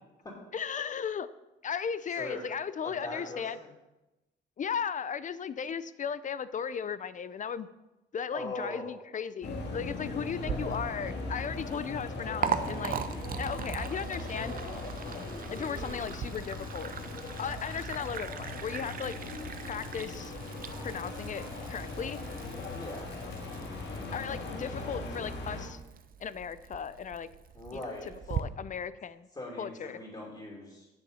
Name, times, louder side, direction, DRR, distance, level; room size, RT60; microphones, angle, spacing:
voice 1, 0.5-1.3 1.6-3.6 4.6-7.7 8.1-14.5 15.5-16.9 17.4-19.2 19.6-20.3 20.8-22.2 24.1-25.8 26.2-27.3 27.7-27.9 28.3-29.3 29.6-30.0, left 7 dB, 40° left, 16 dB, 0.5 m, -36 dB
voice 2, 2.2-2.5 2.8-3.7 8.3-8.9 10.4-10.7 22.7-23.1 27.5-28.3 29.3-30.9, left 1 dB, 25° left, -4 dB, 2.9 m, -41 dB
sound 1, 9.4-25.7, left 2 dB, 60° left, 2.0 m, -39 dB
Liquid, 10.4-28.4, right 7 dB, 45° right, 0.6 m, -40 dB
Wind instrument woodwind instrument, 18.3-23.0, right 8 dB, 80° right, 1.0 m, -52 dB
8.6 x 7.0 x 5.5 m, 1.0 s
cardioid pair, 90°, 20 cm